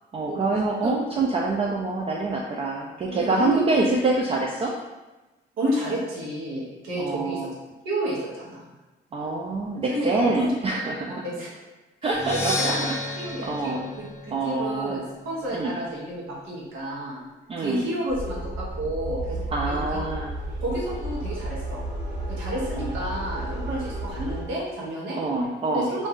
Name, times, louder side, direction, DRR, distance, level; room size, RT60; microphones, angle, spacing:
voice 1, 0.1-4.7 7.0-7.5 9.1-11.2 12.0-12.7 13.5-13.9 14.3-15.1 15.5-15.7 17.5-17.9 19.5-20.3 22.8-22.9 25.2-25.9, right 3 dB, 30° right, -2 dB, 0.3 m, -26 dB
voice 2, 3.1-3.8 5.6-7.5 7.8-8.7 9.9-10.5 11.2-11.5 12.0-17.2 17.6-20.0 20.6-21.8 22.3-25.2 25.7-26.1, right 1 dB, 90° right, -5 dB, 1.0 m, -31 dB
Percussion, 12.1-15.9, left 2 dB, 10° left, 0.7 m, -33 dB
sound 1, 18.1-24.4, right 1 dB, 50° right, 1.3 m, -32 dB
2.6 x 2.3 x 3.5 m, 1.1 s
cardioid pair, 90°, 20 cm